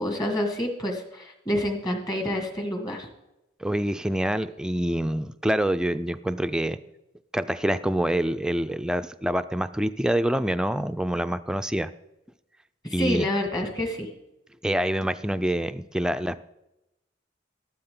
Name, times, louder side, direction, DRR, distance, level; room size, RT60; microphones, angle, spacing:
voice 1, 0.0-3.1 12.8-14.1, equal, 20° left, 3 dB, 2.0 m, -28 dB
voice 2, 3.6-6.8 7.3-11.9 12.9-13.3 14.6-16.4, right 1 dB, 5° right, 10 dB, 0.4 m, -26 dB
13.5 x 12.0 x 3.8 m, 0.92 s
head